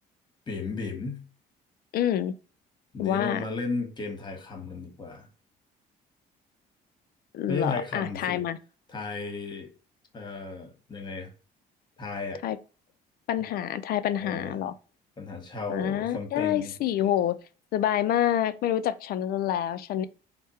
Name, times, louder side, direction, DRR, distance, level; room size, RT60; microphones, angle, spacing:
voice 1, 0.5-1.2 2.9-5.3 7.5-8.4 8.9-9.7 10.1-11.3 12.0-12.4 14.2-14.6 15.2-16.7, left 3 dB, 25° left, 1.2 m, -34 dB
voice 2, 1.9-2.3 3.0-3.4 7.3-8.6 12.4-12.6 13.3-14.7 15.7-17.4 17.7-20.0, left 11 dB, 65° left, 0.4 m, -27 dB
3.5 x 2.2 x 4.1 m
cardioid pair, 110°, 17 cm